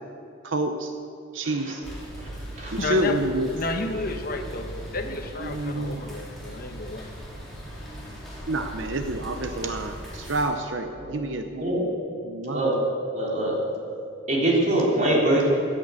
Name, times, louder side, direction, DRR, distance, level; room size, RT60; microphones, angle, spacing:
voice 1, 0.4-0.9 1.3-1.8 2.7-3.5 5.4-6.0 8.5-12.0 12.2-12.7, right 1 dB, 65° right, 6 dB, 0.7 m, -28 dB
voice 2, 1.4-1.7 2.2-2.3 2.6-2.8 11.0-11.2 11.6-11.8 12.5-12.8 13.1-13.6 14.3-15.5, right 1 dB, 40° right, -4 dB, 3.4 m, -23 dB
sound 1, 1.8-10.4, right 1 dB, ahead, 3.8 m, -39 dB
voice 3, 2.8-3.2 3.5-7.1, left 2 dB, 45° left, 5 dB, 1.1 m, -31 dB
14.5 x 9.0 x 8.2 m, 2.6 s
head